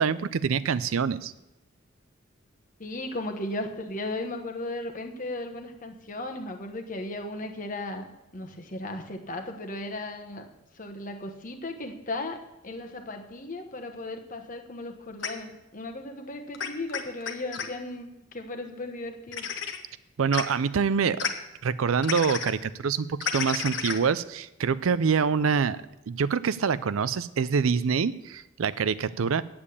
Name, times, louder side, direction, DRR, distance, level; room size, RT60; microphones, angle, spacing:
voice 1, 0.0-1.3 20.2-21.3 21.6-25.8 26.1-29.4, right 6 dB, 80° right, 16 dB, 0.5 m, -25 dB
voice 2, 2.8-8.1 8.3-10.5 10.7-19.5, left 2 dB, 40° left, 4 dB, 1.2 m, -36 dB
sound 1, 15.2-15.3 16.5-17.7 19.3-19.8 20.3-20.4 21.2-21.3 22.0-22.5 23.2-24.0, left 7 dB, 60° left, 1.0 m, -30 dB
8.5 x 7.4 x 8.6 m, 0.94 s
head